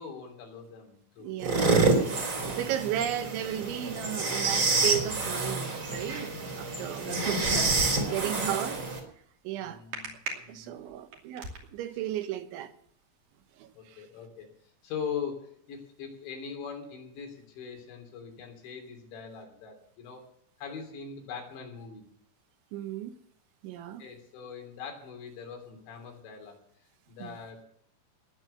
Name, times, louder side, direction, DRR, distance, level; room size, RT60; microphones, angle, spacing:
voice 1, 0.0-1.5 2.1-3.0 7.0-8.4 9.5-10.1 10.4-10.9 13.7-14.5 14.8-20.3 20.6-22.0 24.0-26.6 27.1-27.6, left 6 dB, 75° left, 5.5 m, -42 dB
voice 2, 1.2-7.1 8.1-8.9 9.5-9.8 10.5-12.7 13.6-14.1 22.7-23.2 23.6-24.0 27.2-27.4, right 12 dB, 85° right, 3.5 m, -35 dB
sound 1, 1.4-9.0, right 3 dB, 30° right, 4.1 m, -28 dB
sound 2, 7.0-8.2 9.9-10.3 10.9-11.6, right 2 dB, 50° right, 4.1 m, -33 dB
20.0 x 9.3 x 6.7 m
omnidirectional pair, 5.2 m